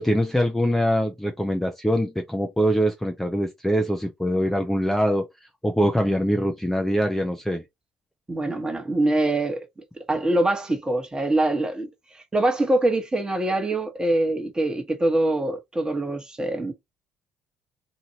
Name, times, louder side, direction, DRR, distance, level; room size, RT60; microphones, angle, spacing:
voice 1, 0.0-5.3 5.6-7.6, equal, 5° left, 0.6 m, -23 dB
voice 2, 8.3-9.7 10.1-16.7, right 1 dB, 20° right, 1.2 m, -24 dB
2.8 x 2.6 x 2.8 m
hypercardioid pair, 60°, 4 cm